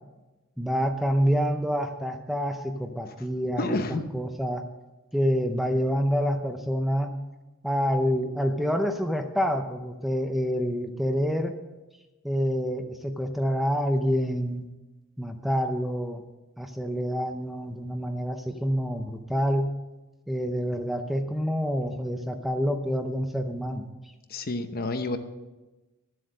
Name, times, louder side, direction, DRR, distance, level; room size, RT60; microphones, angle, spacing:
voice 1, 0.6-3.8 4.1-4.6 5.1-7.1 7.6-11.6 12.2-14.7 15.2-16.2 16.6-19.7 20.3-23.9, equal, ahead, 6 dB, 0.6 m, -27 dB
voice 2, 3.6-4.0 24.3-25.2, left 2 dB, 45° left, 8 dB, 0.8 m, -29 dB
12.0 x 7.7 x 6.5 m, 1.1 s
head